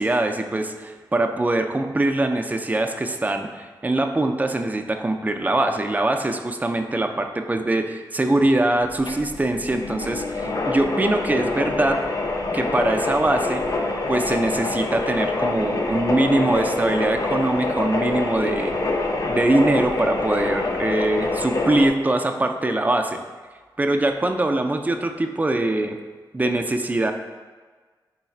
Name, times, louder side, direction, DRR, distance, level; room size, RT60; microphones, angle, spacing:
voice 1, 0.0-12.0 12.5-13.6 14.1-18.7 19.3-23.2 23.8-26.0 26.3-27.1, right 2 dB, 20° right, 5 dB, 0.3 m, -22 dB
sound 1, 8.8-21.9, left 3 dB, 45° left, 0.5 m, -26 dB
4.2 x 3.9 x 2.3 m, 1.4 s
cardioid pair, 65°, 8 cm